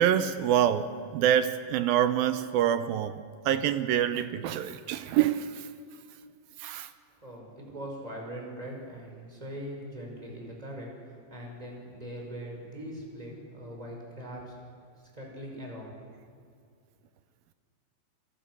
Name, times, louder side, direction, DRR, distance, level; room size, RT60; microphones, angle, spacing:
voice 1, 0.0-5.7 6.6-6.9, right 10 dB, 80° right, 2.5 m, -26 dB
voice 2, 7.2-14.6 15.1-16.0, equal, 10° right, 5.4 m, -41 dB
28.5 x 24.5 x 6.3 m
omnidirectional pair, 4.4 m